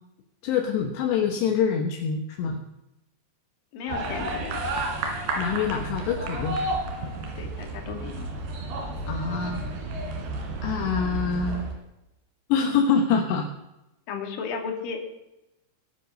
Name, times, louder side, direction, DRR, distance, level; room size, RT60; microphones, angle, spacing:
voice 1, 0.4-2.6 5.4-6.6 9.1-9.7 10.6-11.6 12.5-13.5, left 6 dB, 75° left, 3 dB, 3.2 m, -25 dB
voice 2, 3.7-4.8 7.4-8.3 14.1-15.0, left 5 dB, 55° left, 3 dB, 3.6 m, -34 dB
sound 1, 3.9-11.7, right 2 dB, 70° right, 4.8 m, -31 dB
22.0 x 9.0 x 6.4 m, 0.92 s
omnidirectional pair, 5.3 m